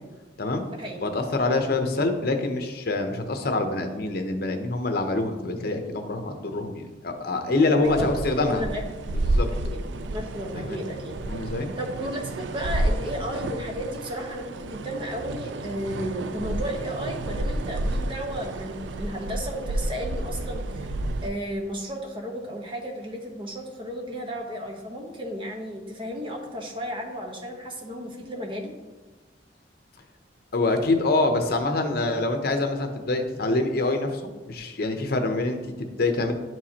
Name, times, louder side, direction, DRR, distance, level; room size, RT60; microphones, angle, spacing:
voice 1, 1.0-8.6 9.1-9.5 10.5-10.8 11.3-11.7 30.5-34.2 34.5-36.3, left 2 dB, 60° left, 5 dB, 0.8 m, -25 dB
voice 2, 7.5-8.1 8.4-8.8 9.6-9.8 10.1-11.2 11.8-20.9 21.2-28.7, equal, 30° right, 1 dB, 1.1 m, -33 dB
sound 1, 7.8-21.3, right 1 dB, 85° right, 0.4 m, -30 dB
11.0 x 4.7 x 2.9 m, 1.2 s
head